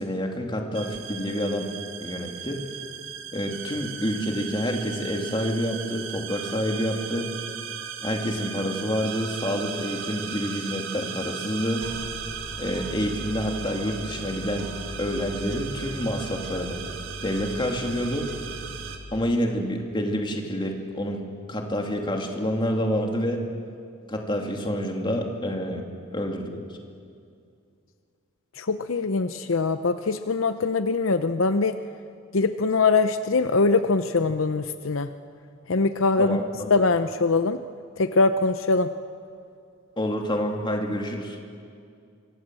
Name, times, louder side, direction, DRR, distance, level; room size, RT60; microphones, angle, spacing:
voice 1, 0.0-1.7 2.0-2.6 3.3-7.3 8.0-11.9 12.6-14.7 15.0-16.8 17.2-18.3 19.1-21.2 21.5-23.4 24.1-25.8 26.1-26.6 36.2-36.7 40.0-41.4, equal, 25° left, 2 dB, 2.6 m, -28 dB
sound 1, 0.7-19.0, right 6 dB, 65° right, 2.2 m, -36 dB
voice 2, 28.6-31.8 32.3-35.1 35.7-36.4 36.7-37.6 38.0-38.9, left 3 dB, 70° left, 10 dB, 0.7 m, -22 dB
25.5 x 25.0 x 7.7 m, 2.4 s
head